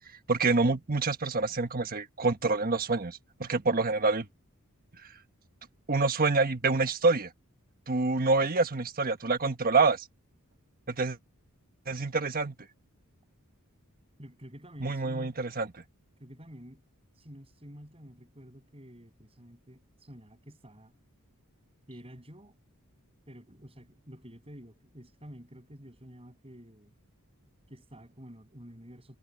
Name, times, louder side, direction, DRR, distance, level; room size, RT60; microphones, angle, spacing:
voice 1, 0.3-4.3 5.9-7.3 7.9-10.1 10.9-11.2 11.9-12.5 14.8-15.7, right 3 dB, 40° right, 1.3 m, -27 dB
voice 2, 14.2-15.3 16.2-16.8 17.1-20.9 21.9-22.6 23.3-26.9 27.7-29.2, equal, 25° right, 7.7 m, -49 dB
head